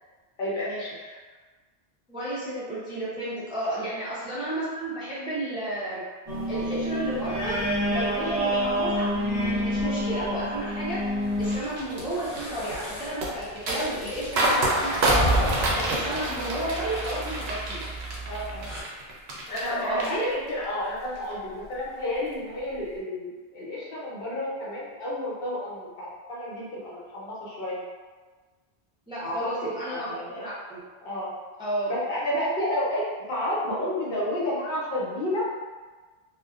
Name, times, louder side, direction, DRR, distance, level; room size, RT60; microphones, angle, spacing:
voice 1, 0.4-1.2 3.7-3.9 8.1-8.4 18.3-18.7 19.5-27.8 29.2-30.4 31.0-31.3 31.9-35.5, left 1 dB, 65° left, -7 dB, 0.9 m, -31 dB
voice 2, 2.1-6.0 6.5-7.6 7.9-9.1 9.3-11.0 11.4-15.3 15.8-17.8 19.5-20.2 29.1-30.8 31.6-31.9, right 1 dB, 10° right, -9 dB, 0.3 m, -32 dB
sound 1, 6.3-11.6, equal, 40° right, 0.8 m, -27 dB
sound 2, 11.2-18.8, right 1 dB, 35° left, 0.7 m, -33 dB
sound 3, 11.4-19.7 20.0-20.6 21.0-21.3, right 1 dB, 80° right, 0.8 m, -28 dB
2.5 x 2.1 x 2.3 m, 1.4 s
omnidirectional pair, 1.1 m